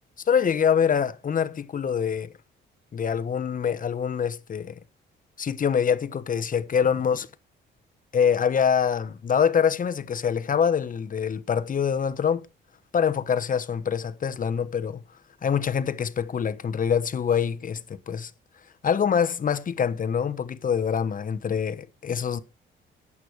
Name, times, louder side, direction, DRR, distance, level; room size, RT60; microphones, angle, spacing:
voice 1, 0.3-2.3 2.9-4.8 5.4-7.3 8.1-12.5 12.9-15.0 15.4-18.3 18.8-22.4, left 7 dB, 45° left, 1.1 m, -25 dB
11.5 x 8.7 x 4.8 m
cardioid pair, 90°, 20 cm